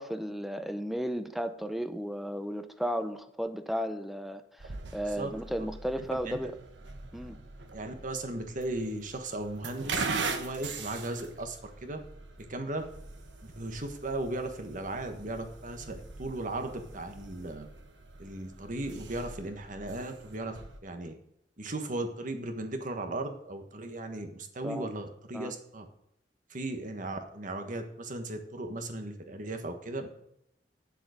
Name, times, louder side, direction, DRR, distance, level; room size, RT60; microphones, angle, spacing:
voice 1, 0.0-4.4 4.9-6.5 7.1-7.4 24.6-24.9 25.3-25.5, equal, ahead, 0.6 m, -34 dB
sound 1, 4.6-20.8, right 4 dB, 85° right, 1.2 m, -41 dB
voice 2, 6.0-6.4 7.7-12.0 12.4-12.8 13.4-17.7 18.2-20.6 20.8-21.2 21.6-25.9 26.5-30.1, right 2 dB, 45° right, 1.4 m, -37 dB
9.4 x 7.3 x 5.0 m
head